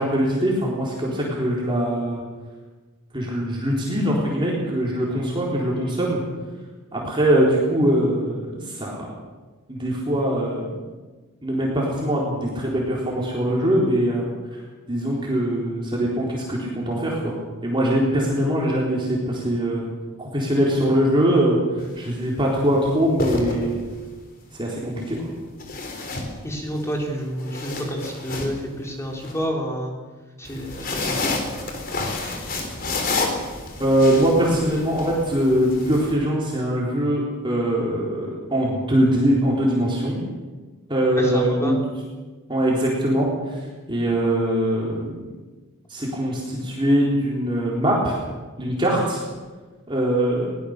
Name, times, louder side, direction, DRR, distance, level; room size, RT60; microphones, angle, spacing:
voice 1, 0.0-2.2 3.1-6.2 6.9-9.1 9.7-10.7 11.4-14.3 14.9-17.4 17.6-19.8 20.2-21.6 22.0-23.7 24.6-25.2 33.8-40.2 40.9-41.8 42.5-43.3 43.9-45.2 45.9-48.2 48.6-49.2 49.9-50.5, right 1 dB, 20° right, -3 dB, 3.9 m, -22 dB
sound 1, 21.8-22.0 23.0-24.1 25.6-26.8 27.2-29.3 30.4-36.1, left 3 dB, 40° left, 3.6 m, -29 dB
voice 2, 26.4-29.9 30.4-31.4 41.1-41.8, equal, 15° left, 0 dB, 3.8 m, -29 dB
22.0 x 18.0 x 6.6 m, 1.3 s
head